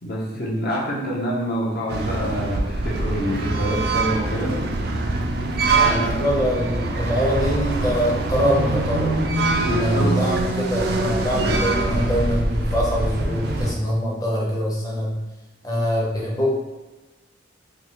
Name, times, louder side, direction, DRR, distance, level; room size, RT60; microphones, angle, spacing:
voice 1, 0.0-4.6 5.8-6.2 9.6-10.2, equal, 50° left, -4 dB, 0.9 m, -26 dB
sound 1, 1.9-13.7, right 2 dB, 55° right, 0.4 m, -23 dB
voice 2, 5.2-9.1 9.8-15.2 15.6-16.5, equal, 20° left, -4 dB, 0.8 m, -24 dB
3.7 x 2.7 x 3.0 m, 1.1 s
head